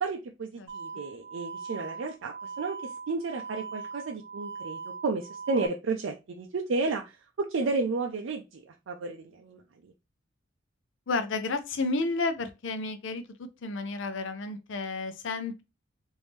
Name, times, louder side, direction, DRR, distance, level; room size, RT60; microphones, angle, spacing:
voice 1, 0.0-9.9, right 3 dB, 70° right, 0.4 m, -32 dB
sound 1, 0.7-5.7, right 5 dB, 25° right, 1.0 m, -41 dB
voice 2, 11.1-15.6, left 3 dB, 70° left, 0.6 m, -31 dB
3.4 x 2.6 x 3.2 m
head